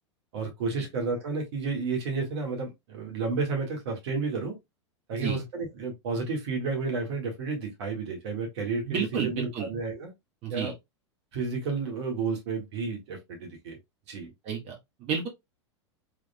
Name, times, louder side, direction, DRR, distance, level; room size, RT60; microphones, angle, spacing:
voice 1, 0.3-4.6 5.1-8.9 9.2-10.1 10.5-10.7 11.3-13.8 14.1-14.3, right 4 dB, 65° right, 1.8 m, -31 dB
voice 2, 8.8-9.7 10.4-10.7 14.4-15.3, right 7 dB, 45° right, 1.4 m, -31 dB
3.5 x 3.4 x 2.2 m
hypercardioid pair, 90°, 15 cm